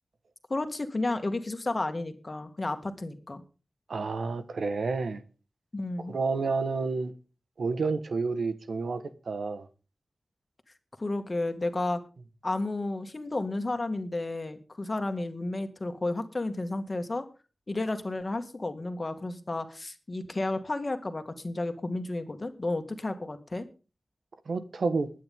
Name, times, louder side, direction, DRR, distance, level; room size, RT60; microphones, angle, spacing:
voice 1, 0.5-3.4 5.7-6.1 11.0-12.0 12.4-17.2 17.7-23.7, left 2 dB, 35° left, 2.0 m, -32 dB
voice 2, 3.9-5.2 6.1-7.1 7.6-9.7 24.5-25.1, right 4 dB, 90° right, 1.4 m, -30 dB
21.5 x 9.4 x 3.7 m
wide cardioid pair, 95°, 0 cm